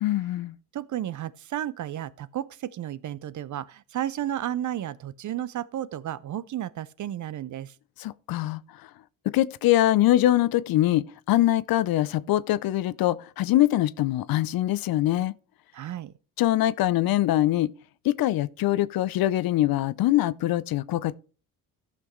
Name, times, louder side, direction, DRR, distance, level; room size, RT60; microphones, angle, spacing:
voice 1, 0.0-0.5 8.0-8.9 9.3-15.3 16.4-17.7 18.0-21.1, left 14 dB, 55° left, 0.6 m, -23 dB
voice 2, 0.7-7.7 15.7-16.1, right 11 dB, 45° right, 0.6 m, -33 dB
14.5 x 5.9 x 3.1 m
hypercardioid pair, 60°, 43 cm